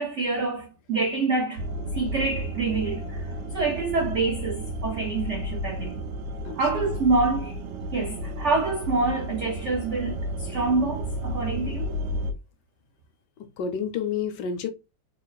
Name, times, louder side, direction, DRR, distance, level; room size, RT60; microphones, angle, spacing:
voice 1, 0.0-1.6 1.9-6.0 6.5-7.6 7.9-11.9, right 3 dB, 75° right, 0.6 m, -26 dB
sound 1, 1.6-12.3, equal, 90° right, 1.4 m, -32 dB
voice 2, 6.4-6.9 13.4-14.7, left 7 dB, 70° left, 1.2 m, -30 dB
3.5 x 2.4 x 3.8 m
omnidirectional pair, 2.0 m